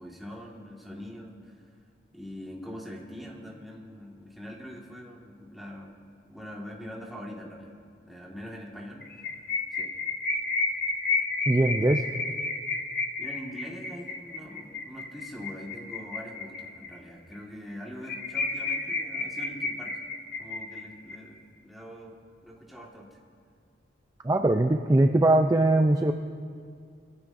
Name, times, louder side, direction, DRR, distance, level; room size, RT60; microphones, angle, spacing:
voice 1, 0.0-1.7 2.1-6.0 6.3-7.7 8.0-9.3 9.7-10.0 13.2-20.0 20.4-22.2 22.4-23.2, equal, ahead, -3 dB, 1.7 m, -43 dB
sound 1, 9.0-16.9 17.3-17.4 17.7-17.8 18.0-21.1, left 3 dB, 50° left, 1.2 m, -31 dB
voice 2, 11.5-12.1 24.2-26.1, right 2 dB, 20° right, 5 dB, 0.4 m, -21 dB
23.5 x 15.0 x 2.6 m, 2.2 s
head